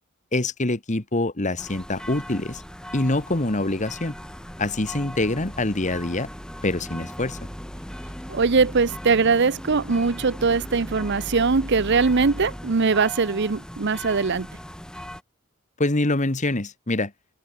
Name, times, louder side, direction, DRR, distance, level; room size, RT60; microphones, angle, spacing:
voice 1, 0.3-2.6 2.9-4.2 4.6-6.3 6.6-7.4 15.8-17.1, left 2 dB, 35° left, 1.8 m, -25 dB
sound 1, 1.6-15.2, equal, 5° left, 3.3 m, -38 dB
voice 2, 8.3-14.5, right 4 dB, 55° right, 0.8 m, -21 dB
head